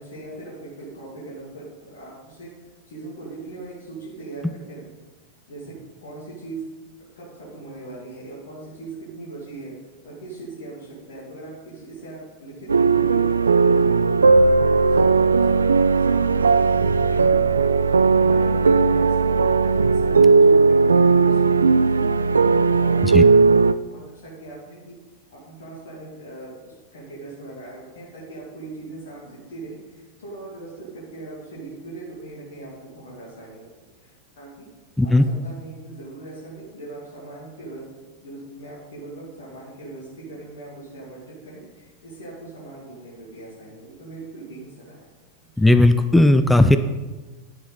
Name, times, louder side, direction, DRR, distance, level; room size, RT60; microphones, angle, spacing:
voice 1, 0.0-2.5 2.9-5.0 5.5-5.8 6.0-6.6 7.0-9.7 10.0-14.2 14.6-17.6 17.9-22.3 22.7-24.9 25.3-33.7 34.0-34.7 35.0-35.1 35.4-37.9 38.2-45.1 45.5-45.7, right 2 dB, 60° left, -6 dB, 2.5 m, -40 dB
sound 1, 12.7-23.7, right 4 dB, 75° right, 0.3 m, -17 dB
voice 2, 45.6-46.8, left 1 dB, 5° left, 8 dB, 0.5 m, -15 dB
10.0 x 7.7 x 4.0 m, 1.2 s
figure-of-eight pair, 90°, 0 cm